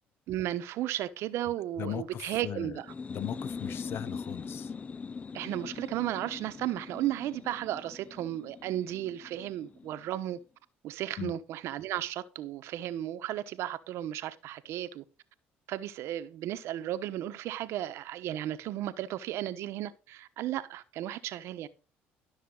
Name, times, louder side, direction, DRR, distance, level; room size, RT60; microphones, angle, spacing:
voice 1, 0.3-2.9 5.3-10.4 10.8-15.0 15.7-21.7, right 13 dB, 70° right, 1.0 m, -34 dB
voice 2, 1.8-2.8 3.1-4.7 11.2-11.3, left 10 dB, 55° left, 1.0 m, -38 dB
sound 1, 2.7-10.3, left 5 dB, 30° left, 0.4 m, -42 dB
12.5 x 6.6 x 3.9 m
supercardioid pair, 80°, 5 cm